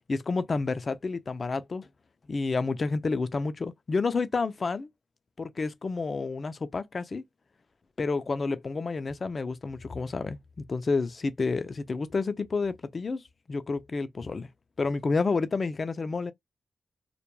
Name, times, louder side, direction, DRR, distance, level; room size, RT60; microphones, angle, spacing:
voice 1, 0.1-1.9 2.3-4.9 5.4-7.2 8.0-13.2 13.5-14.5 14.8-16.3, left 4 dB, 50° left, 0.4 m, -30 dB
2.2 x 2.2 x 3.0 m
cardioid pair, 60°, 0 cm